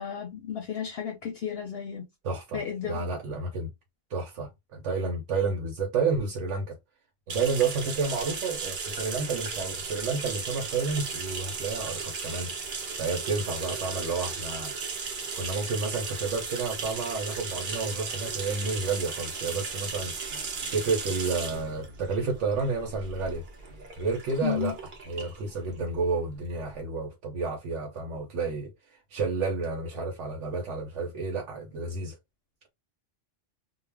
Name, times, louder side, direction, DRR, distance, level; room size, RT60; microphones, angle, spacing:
voice 1, 0.0-2.1 2.5-3.1 24.4-24.7, left 7 dB, 65° left, 0.7 m, -33 dB
voice 2, 2.2-3.7 4.1-6.8 7.3-12.5 13.0-14.7 15.4-20.2 20.7-23.5 24.0-24.8 25.1-32.2, right 4 dB, 80° right, 1.0 m, -30 dB
sound 1, 7.3-26.7, right 5 dB, 50° right, 0.7 m, -36 dB
2.3 x 2.1 x 3.2 m
omnidirectional pair, 1.2 m